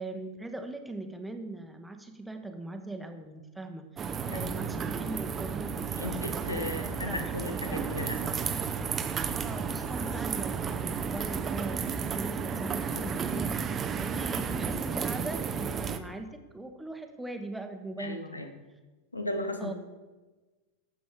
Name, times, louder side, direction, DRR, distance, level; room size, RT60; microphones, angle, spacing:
voice 1, 0.0-7.9 9.3-18.4 19.6-19.7, right 2 dB, 5° right, 6 dB, 0.9 m, -40 dB
sound 1, 4.0-16.0, right 6 dB, 25° right, 0.5 m, -32 dB
voice 2, 4.3-4.7 5.9-8.5 12.9-13.1 18.0-18.5 19.1-19.7, left 1 dB, 80° left, 6 dB, 1.0 m, -36 dB
12.5 x 7.4 x 3.6 m, 1.2 s
figure-of-eight pair, 90°, 0 cm